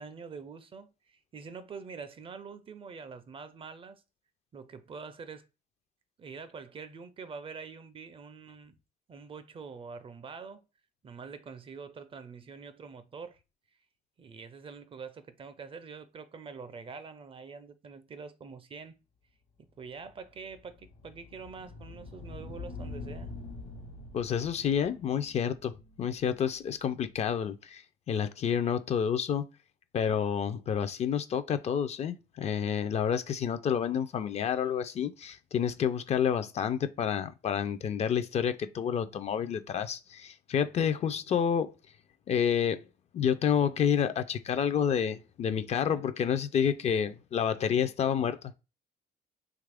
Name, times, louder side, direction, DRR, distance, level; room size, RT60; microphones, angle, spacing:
voice 1, 0.0-4.0 4.5-5.5 6.2-8.7 9.1-10.7 11.0-13.4 14.2-19.0 19.8-23.3, right 5 dB, 30° right, 0.4 m, -45 dB
sound 1, 20.1-27.0, left 3 dB, 65° left, 1.0 m, -46 dB
voice 2, 24.1-25.7 26.0-29.4 29.9-41.7 42.3-42.8 43.1-48.5, left 8 dB, 40° left, 0.4 m, -29 dB
2.9 x 2.4 x 3.4 m
cardioid pair, 110°, 17 cm